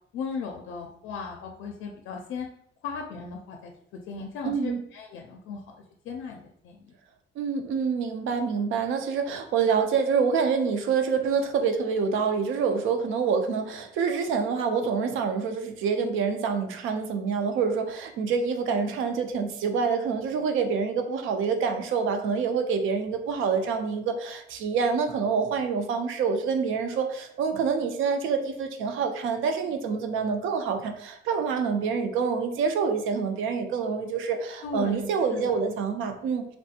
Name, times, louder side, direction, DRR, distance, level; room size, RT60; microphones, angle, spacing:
voice 1, 0.1-2.5 2.8-5.6 6.0-7.0 34.6-35.6, left 5 dB, 85° left, 1 dB, 0.4 m, -37 dB
voice 2, 4.4-4.8 7.4-36.5, right 5 dB, 85° right, 6 dB, 0.5 m, -26 dB
3.3 x 2.7 x 2.4 m, 0.69 s
cardioid pair, 90°, 20 cm